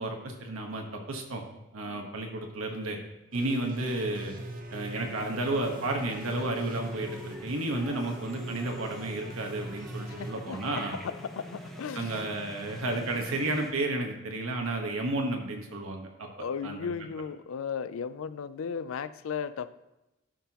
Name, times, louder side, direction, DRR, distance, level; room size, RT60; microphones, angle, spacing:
voice 1, 0.0-1.4 1.7-3.0 3.3-4.4 4.7-11.0 11.9-16.3 16.6-16.9, right 2 dB, 85° right, 2 dB, 1.2 m, -32 dB
sound 1, 3.3-10.3, right 1 dB, 40° right, 0.9 m, -40 dB
sound 2, 4.9-13.7, equal, ahead, 0.8 m, -46 dB
voice 2, 10.2-12.2 14.7-14.9 16.4-19.7, left 6 dB, 75° left, 14 dB, 0.4 m, -36 dB
12.5 x 5.6 x 2.9 m, 0.94 s
head